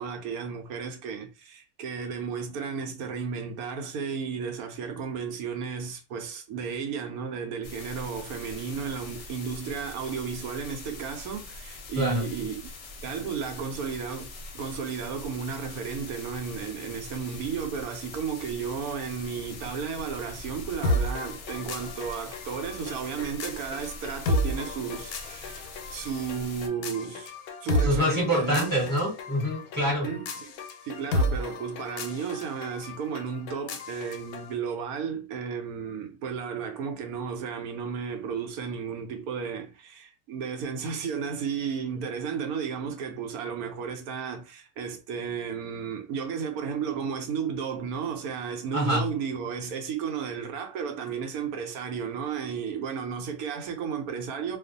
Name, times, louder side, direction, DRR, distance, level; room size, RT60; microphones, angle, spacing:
voice 1, 0.0-12.6 13.0-27.3 27.6-28.7 29.9-30.6 30.8-54.6, right 6 dB, 80° right, 1.0 m, -33 dB
sound 1, 7.6-26.7, left 3 dB, 60° left, 0.8 m, -43 dB
sound 2, 20.8-34.5, left 1 dB, 90° left, 1.1 m, -33 dB
voice 2, 27.8-30.1 48.7-49.0, equal, 15° left, 0.8 m, -25 dB
2.4 x 2.3 x 2.5 m
omnidirectional pair, 1.6 m